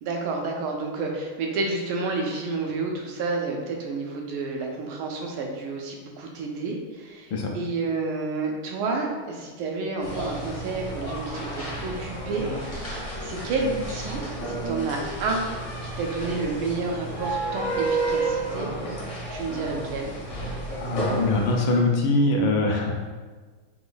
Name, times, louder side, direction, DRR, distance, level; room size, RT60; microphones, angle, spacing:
voice 1, 0.0-14.2 14.5-15.4 15.8-18.9 19.3-20.2, right 3 dB, 75° right, 1 dB, 1.5 m, -30 dB
sound 1, 10.0-21.5, right 2 dB, 45° left, 0.6 m, -31 dB
voice 2, 20.8-22.9, left 2 dB, 75° left, 1 dB, 1.2 m, -23 dB
4.0 x 2.9 x 3.9 m, 1.4 s
omnidirectional pair, 2.4 m